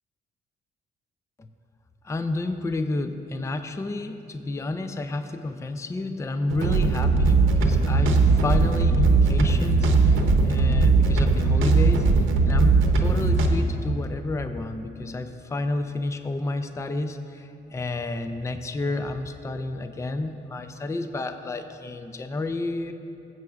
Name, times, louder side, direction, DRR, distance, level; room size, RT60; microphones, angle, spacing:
voice 1, 2.0-12.1 12.4-22.9, left 2 dB, 15° left, 8 dB, 0.4 m, -30 dB
sound 1, 6.4-13.5, right 3 dB, 85° right, 0.9 m, -19 dB
17.5 x 7.7 x 2.4 m, 2.7 s
cardioid pair, 90°, 20 cm